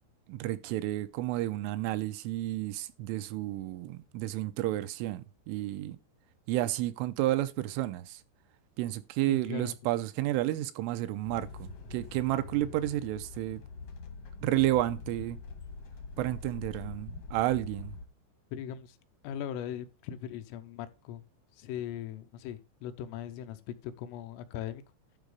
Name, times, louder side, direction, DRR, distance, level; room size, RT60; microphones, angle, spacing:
voice 1, 0.3-6.0 6.5-8.2 8.8-13.6 14.4-15.4 16.2-18.0, right 15 dB, 85° right, 3.1 m, -31 dB
voice 2, 9.3-9.8 18.5-19.0 19.2-21.2 21.6-24.8, left 10 dB, 85° left, 3.4 m, -39 dB
sound 1, 11.3-18.1, left 4 dB, 65° left, 1.5 m, -44 dB
12.0 x 4.0 x 4.9 m
omnidirectional pair, 5.7 m